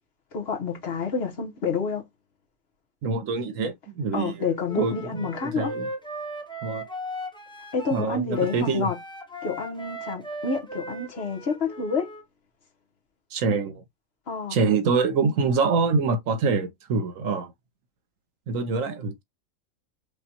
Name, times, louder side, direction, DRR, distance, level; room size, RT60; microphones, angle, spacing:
voice 1, 0.3-2.0 4.1-5.7 7.7-9.0 9.4-12.1 14.3-14.6, left 4 dB, 50° left, 1.2 m, -28 dB
voice 2, 3.0-4.5 4.8-5.9 6.6-6.8 7.9-8.9 13.3-13.8 14.5-17.5 18.5-19.2, right 4 dB, 75° right, 1.2 m, -25 dB
Wind instrument woodwind instrument, 4.7-12.2, right 1 dB, 5° left, 0.6 m, -38 dB
5.1 x 2.3 x 2.8 m
omnidirectional pair, 1.4 m